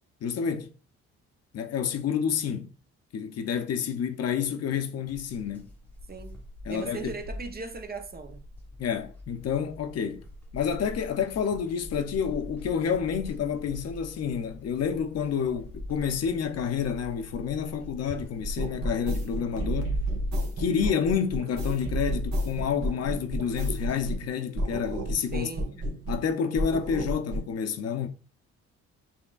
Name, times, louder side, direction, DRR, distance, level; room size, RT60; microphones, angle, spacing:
voice 1, 0.2-0.7 1.5-2.7 3.1-5.7 6.7-7.1 8.8-10.2 10.5-20.0 20.6-25.5 25.9-28.1, left 7 dB, 55° left, 0.6 m, -29 dB
sound 1, 5.1-24.2, left 1 dB, 5° left, 1.0 m, -44 dB
voice 2, 6.1-6.4 6.7-8.4 25.3-25.7, right 4 dB, 30° right, 0.5 m, -38 dB
sound 2, 18.6-24.3 24.6-26.3 26.6-27.5, right 1 dB, 65° right, 1.0 m, -31 dB
7.0 x 2.9 x 2.3 m
cardioid pair, 90°, 30 cm